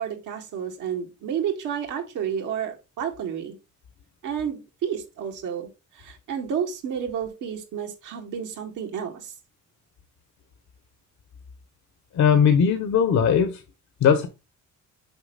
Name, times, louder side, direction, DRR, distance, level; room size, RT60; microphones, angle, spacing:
voice 1, 0.0-3.6 4.2-9.3, right 8 dB, 85° right, 2.1 m, -31 dB
voice 2, 12.1-13.6 14.0-14.3, left 7 dB, 65° left, 1.0 m, -19 dB
6.9 x 4.6 x 4.0 m
cardioid pair, 90°, 30 cm